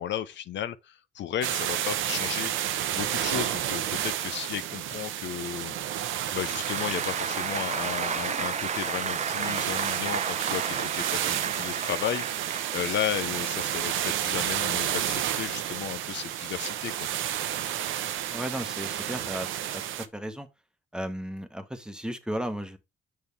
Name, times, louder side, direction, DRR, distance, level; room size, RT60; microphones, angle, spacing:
voice 1, 0.0-2.5 2.9-6.1 6.3-17.1, left 10 dB, 65° left, 0.6 m, -34 dB
sound 1, 1.4-20.0, right 11 dB, 85° right, 0.8 m, -31 dB
Applause, 6.2-13.3, right 6 dB, 35° right, 0.7 m, -33 dB
voice 2, 18.3-19.5 19.7-20.5 20.9-22.8, equal, 5° right, 1.2 m, -34 dB
7.2 x 6.4 x 3.4 m
cardioid pair, 90°, 20 cm